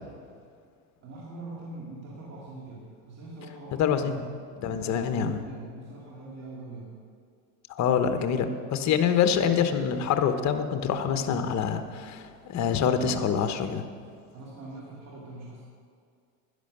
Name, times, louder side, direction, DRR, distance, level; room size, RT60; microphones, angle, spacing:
voice 1, 1.0-4.2 4.8-6.9 14.3-15.6, right 2 dB, 40° right, -4 dB, 2.6 m, -43 dB
voice 2, 3.8-5.4 7.7-13.9, left 7 dB, 45° left, 8 dB, 1.1 m, -26 dB
11.5 x 10.5 x 6.6 m, 2.2 s
supercardioid pair, 115°, 39 cm